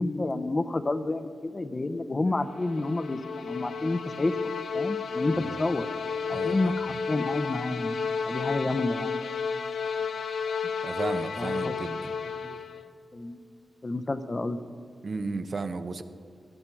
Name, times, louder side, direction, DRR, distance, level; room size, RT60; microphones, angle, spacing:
voice 1, 0.0-5.9 6.3-8.0 8.3-9.2 11.4-11.8 12.4-12.6 13.1-13.4 13.8-14.6, left 2 dB, 30° left, 11 dB, 0.7 m, -29 dB
sound 1, 2.4-12.9, left 5 dB, 85° left, 0.7 m, -32 dB
voice 2, 6.3-6.7 10.8-12.1 15.0-16.0, right 3 dB, 50° right, 10 dB, 0.8 m, -34 dB
17.0 x 12.0 x 4.6 m, 2.1 s
wide cardioid pair, 105°, 0 cm